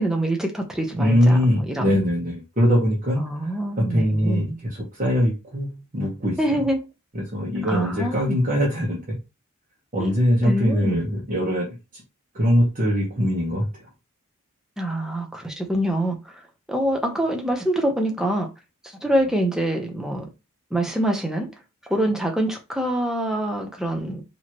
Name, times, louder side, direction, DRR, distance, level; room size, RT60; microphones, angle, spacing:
voice 1, 0.0-1.4 1.7-2.0 3.2-4.6 6.4-6.8 7.6-8.4 10.0-11.0 14.8-16.3 16.7-18.5 19.0-20.3 20.7-21.5 21.9-24.2, right 1 dB, 5° right, 0.7 m, -25 dB
voice 2, 0.9-3.4 3.8-6.6 7.1-9.2 9.9-11.7 11.9-12.0 12.3-13.9, equal, 35° right, 1.2 m, -22 dB
4.6 x 2.9 x 3.0 m
head